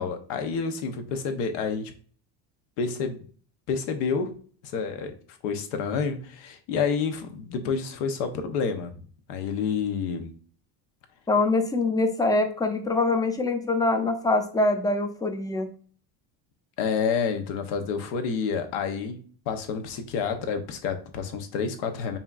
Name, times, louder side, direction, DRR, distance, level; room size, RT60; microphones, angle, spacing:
voice 1, 0.0-1.9 2.8-3.2 3.7-4.3 4.6-5.1 5.4-8.9 9.3-10.3 16.8-19.2 19.5-22.2, left 5 dB, 75° left, 7 dB, 0.9 m, -29 dB
voice 2, 11.3-15.7, left 2 dB, 10° left, 7 dB, 0.4 m, -24 dB
5.4 x 2.8 x 2.4 m, 0.43 s
supercardioid pair, 105°, 50 cm